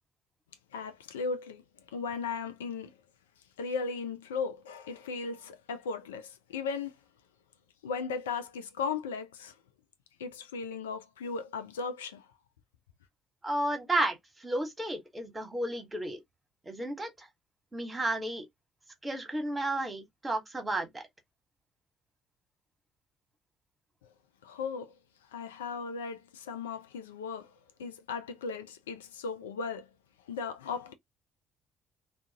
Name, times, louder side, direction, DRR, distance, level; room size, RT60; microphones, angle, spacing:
voice 1, 0.7-2.9 3.6-6.9 7.8-9.6 10.2-12.3 24.4-24.9 25.3-27.5 27.8-29.9 30.3-30.9, left 5 dB, 85° left, 0.4 m, -37 dB
voice 2, 13.4-16.2 16.6-17.3 17.7-18.4 19.0-21.1, right 1 dB, 20° right, 1.2 m, -32 dB
2.4 x 2.4 x 2.7 m
hypercardioid pair, 50°, 0 cm